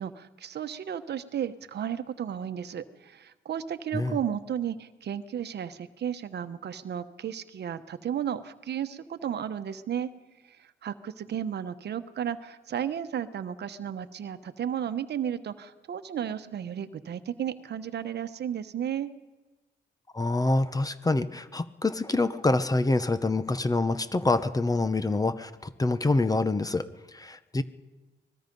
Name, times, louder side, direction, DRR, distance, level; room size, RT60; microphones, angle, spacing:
voice 1, 0.0-10.1 10.4-19.1, right 9 dB, 55° right, 10 dB, 1.1 m, -33 dB
voice 2, 20.1-27.6, left 2 dB, 20° left, 12 dB, 0.9 m, -26 dB
24.5 x 20.5 x 5.4 m, 1.2 s
cardioid pair, 90°, 20 cm